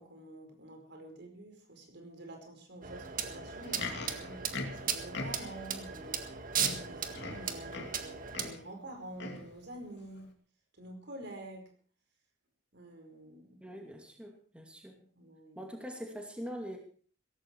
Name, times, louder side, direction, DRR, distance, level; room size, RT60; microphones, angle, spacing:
voice 1, 0.0-6.5 6.8-10.4 10.7-11.7 12.7-13.7 15.2-15.7, right 1 dB, 60° right, 4 dB, 4.9 m, -48 dB
sound 1, 2.8-8.5, right 7 dB, 45° right, 1.8 m, -37 dB
Livestock farm animals working animals, 3.5-5.7 6.2-6.3 6.5-8.0 8.3-8.7 9.2-9.5 10.2-10.3, left 3 dB, 65° left, 2.7 m, -41 dB
voice 2, 13.6-14.9 15.6-16.8, equal, 5° right, 2 dB, 2.4 m, -43 dB
17.0 x 15.0 x 4.7 m, 0.42 s
head